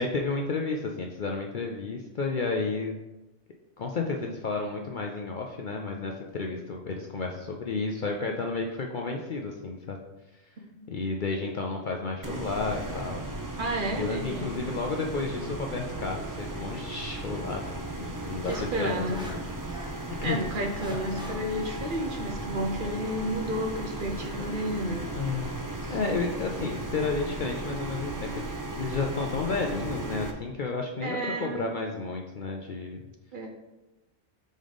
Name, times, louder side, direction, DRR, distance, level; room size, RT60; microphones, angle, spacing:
voice 1, 0.0-2.9 3.8-10.0 10.9-13.3 14.0-19.4 20.1-20.4 25.1-25.6 25.9-33.1, left 3 dB, 55° left, 1 dB, 0.6 m, -32 dB
voice 2, 10.6-10.9 13.6-14.7 18.5-19.2 20.2-25.1 25.8-26.0 31.0-31.7 33.3-33.5, right 1 dB, 50° right, 1 dB, 0.9 m, -32 dB
sound 1, 12.2-30.3, right 2 dB, 25° right, 0.4 m, -36 dB
sound 2, 15.8-16.1 17.9-20.0 20.4-21.3, equal, 5° right, 0.8 m, -44 dB
5.3 x 3.8 x 5.0 m, 1.0 s
omnidirectional pair, 1.2 m